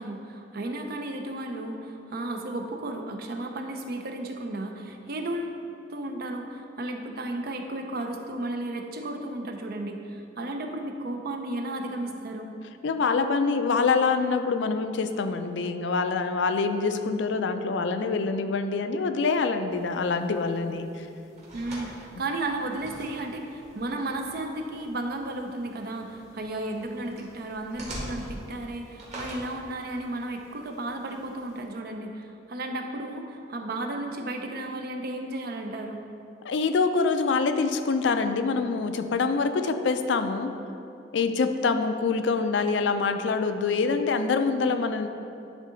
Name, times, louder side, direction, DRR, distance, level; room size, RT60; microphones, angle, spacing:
voice 1, 0.0-5.6 5.9-12.6 21.5-36.1, right 2 dB, 55° right, 4 dB, 0.6 m, -34 dB
voice 2, 12.8-21.1 36.4-40.5 41.1-45.1, left 4 dB, 75° left, 8 dB, 0.4 m, -25 dB
sound 1, 19.7-31.6, right 1 dB, 40° right, 1.6 m, -45 dB
10.5 x 3.7 x 3.8 m, 2.7 s
head